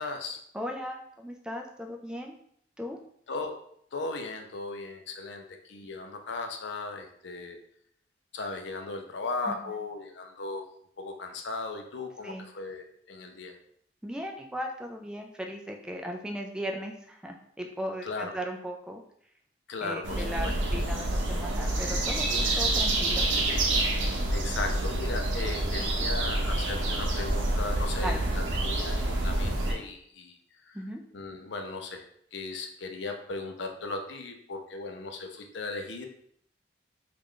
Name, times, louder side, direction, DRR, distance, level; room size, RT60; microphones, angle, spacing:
voice 1, 0.0-0.4 3.3-3.5 3.9-7.6 8.3-10.6 11.0-13.5 18.0-18.3 19.7-20.5 23.2-24.0 24.3-30.4 30.6-30.8 31.1-32.0 32.3-36.1, left 3 dB, 70° left, 4 dB, 0.5 m, -37 dB
voice 2, 0.5-2.4 2.8-3.0 9.5-9.6 12.2-12.5 14.0-19.0 19.8-23.3 28.0-28.2 30.7-31.0, equal, 5° right, 2 dB, 0.3 m, -37 dB
sound 1, 20.0-29.7, right 1 dB, 80° right, 0.7 m, -27 dB
3.2 x 2.4 x 3.7 m, 0.68 s
head